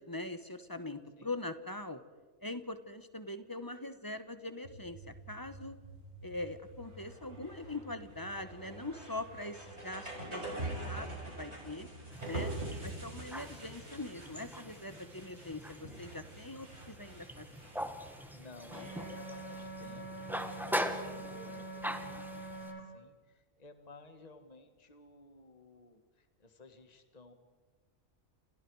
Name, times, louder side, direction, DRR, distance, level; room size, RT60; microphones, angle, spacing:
voice 1, 0.0-2.0 2.4-5.8 6.2-10.6 10.9-11.9 12.2-12.5 12.8-17.6, left 2 dB, 20° left, 10 dB, 1.1 m, -42 dB
sound 1, 4.6-22.6, right 1 dB, 65° right, 6.0 m, -46 dB
sound 2, 12.1-22.7, equal, ahead, 1.6 m, -42 dB
voice 2, 18.3-27.3, left 3 dB, 35° left, 7 dB, 1.7 m, -56 dB
sound 3, 18.7-22.8, right 2 dB, 90° right, 6.1 m, -45 dB
29.0 x 29.0 x 4.8 m, 1.4 s
omnidirectional pair, 1.2 m